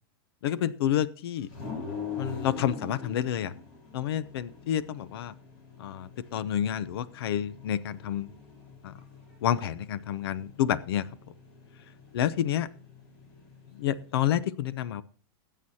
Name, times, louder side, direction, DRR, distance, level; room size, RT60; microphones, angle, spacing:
voice 1, 0.4-1.5 2.2-3.5 3.9-5.3 5.8-8.3 8.8-8.9 9.4-11.1 12.1-12.7 13.7-15.0, left 10 dB, 70° left, 17 dB, 0.7 m, -29 dB
sound 1, 1.5-14.3, left 5 dB, 55° left, 4.4 m, -44 dB
19.5 x 9.2 x 2.8 m, 0.42 s
supercardioid pair, 165°, 13 cm